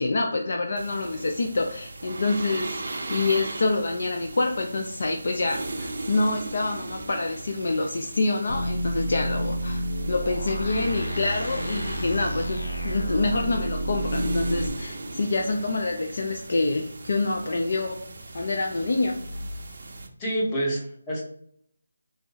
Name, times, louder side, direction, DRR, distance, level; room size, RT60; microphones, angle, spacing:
voice 1, 0.0-9.8 10.1-18.0 18.3-19.1, left 3 dB, 50° left, 2 dB, 0.4 m, -26 dB
sound 1, 0.8-20.1, right 2 dB, 50° right, 0.5 m, -38 dB
sound 2, 8.5-14.7, right 1 dB, 85° left, 0.6 m, -30 dB
voice 2, 20.2-21.2, right 1 dB, 15° left, -3 dB, 0.7 m, -27 dB
2.9 x 2.6 x 3.8 m, 0.64 s
figure-of-eight pair, 175°, 0 cm